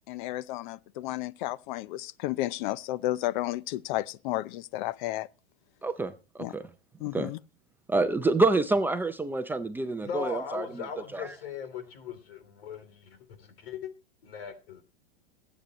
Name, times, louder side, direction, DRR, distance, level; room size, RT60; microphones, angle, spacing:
voice 1, 0.1-5.3 6.4-6.5 7.0-7.4, left 16 dB, 50° left, 0.7 m, -32 dB
voice 2, 5.8-6.6 7.1-7.3 7.9-10.8 11.1-11.3, right 3 dB, 5° right, 0.5 m, -27 dB
voice 3, 10.0-13.9 14.2-14.8, left 6 dB, 75° left, 3.3 m, -39 dB
22.0 x 8.3 x 3.0 m
supercardioid pair, 145°, 30 cm